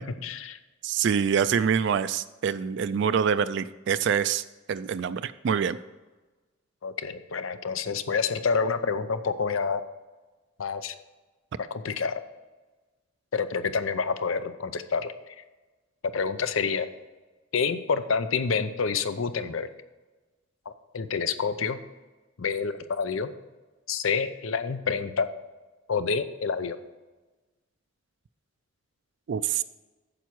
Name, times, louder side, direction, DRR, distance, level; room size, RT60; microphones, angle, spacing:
voice 1, 0.2-0.6 6.8-9.8 10.6-10.9 11.7-12.2 13.3-15.1 16.1-16.9 17.5-19.7 20.9-21.8 22.4-23.3 23.9-25.3 25.9-26.8, left 5 dB, 85° left, 12 dB, 0.6 m, -28 dB
voice 2, 0.8-4.4 4.7-5.8 29.3-29.6, right 7 dB, 60° right, 13 dB, 0.3 m, -25 dB
9.1 x 7.0 x 4.6 m, 1.2 s
head